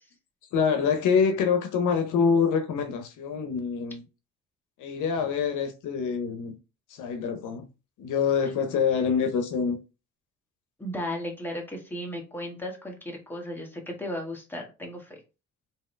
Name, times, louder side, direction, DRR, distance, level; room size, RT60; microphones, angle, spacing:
voice 1, 0.5-4.0 4.8-6.6 6.9-7.6 8.0-9.8, left 6 dB, 80° left, 0.7 m, -25 dB
voice 2, 10.8-15.2, left 1 dB, 5° left, 1.4 m, -35 dB
3.5 x 2.9 x 3.2 m
cardioid pair, 90°, 30 cm